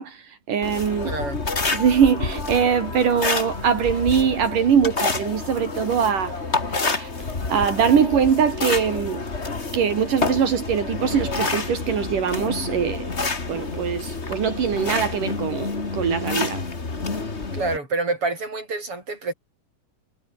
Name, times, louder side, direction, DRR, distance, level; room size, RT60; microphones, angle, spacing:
voice 1, 0.0-1.2 1.7-9.2 9.7-13.1 13.5-16.6, right 7 dB, 75° right, 4.6 m, -22 dB
sound 1, 0.6-17.8, left 3 dB, 20° left, 2.2 m, -28 dB
voice 2, 1.0-1.4 17.5-19.3, right 3 dB, 40° right, 8.4 m, -27 dB
omnidirectional pair, 3.8 m